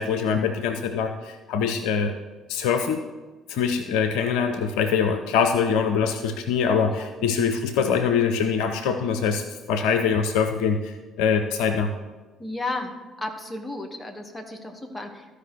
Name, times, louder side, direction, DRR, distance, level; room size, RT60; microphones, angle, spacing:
voice 1, 0.0-2.1 2.5-3.0 3.5-11.9, left 6 dB, 65° left, 7 dB, 0.5 m, -24 dB
voice 2, 12.4-12.9 13.2-15.3, left 2 dB, 15° left, 4 dB, 1.3 m, -33 dB
13.5 x 4.9 x 4.5 m, 1.2 s
figure-of-eight pair, 50°, 0 cm